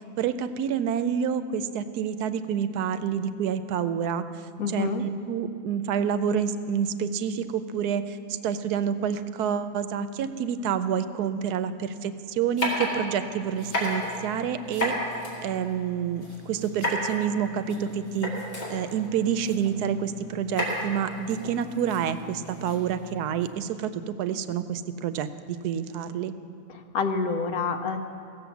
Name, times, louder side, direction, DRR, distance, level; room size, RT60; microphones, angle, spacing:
voice 1, 0.2-4.2 4.7-8.2 8.4-14.9 15.4-18.3 18.7-26.3, right 8 dB, 85° right, 11 dB, 1.1 m, -28 dB
voice 2, 4.6-5.0 26.7-28.0, left 4 dB, 70° left, 6 dB, 1.3 m, -28 dB
sound 1, 12.6-23.5, left 1 dB, 55° left, 3.0 m, -34 dB
16.0 x 7.4 x 7.0 m, 2.4 s
omnidirectional pair, 1.6 m